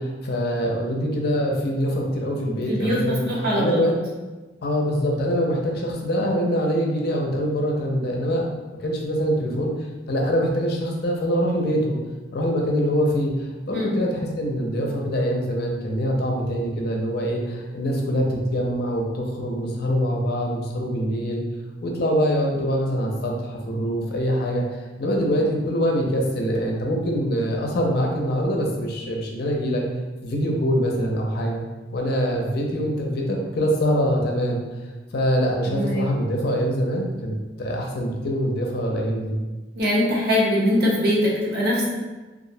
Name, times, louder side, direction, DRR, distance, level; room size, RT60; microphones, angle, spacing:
voice 1, 0.0-3.2 3.5-3.9 4.6-8.4 8.8-9.7 10.1-12.0 12.3-21.4 21.8-24.6 25.0-29.8 30.2-31.6 31.9-34.6 35.1-39.4, equal, 60° left, 0 dB, 0.4 m, -24 dB
voice 2, 2.7-3.9 13.7-14.0 35.7-36.0 39.8-41.9, left 1 dB, 65° right, -5 dB, 0.7 m, -22 dB
2.4 x 2.0 x 2.6 m, 1.2 s
head